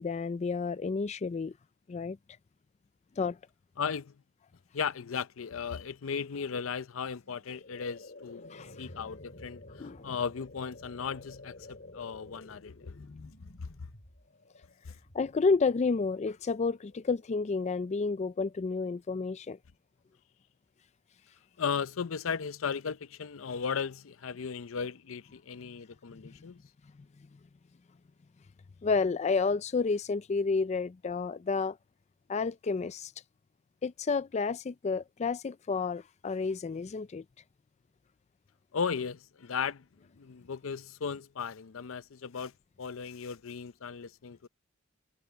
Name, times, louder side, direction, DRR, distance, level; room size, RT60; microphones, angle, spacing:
voice 1, 0.0-1.5 1.9-2.2 3.2-3.4 8.5-8.7 9.8-10.0 13.0-13.3 15.1-19.6 28.8-31.8 32.3-33.1 33.8-37.2, left 4 dB, 35° left, 0.4 m, -30 dB
voice 2, 3.8-4.1 4.7-8.4 8.8-13.0 13.6-13.7 14.8-15.0 21.6-26.6 38.7-39.9 40.2-42.5 42.8-44.5, left 6 dB, 85° left, 0.6 m, -36 dB
sound 1, 7.2-18.3, left 2 dB, 55° left, 3.8 m, -52 dB
head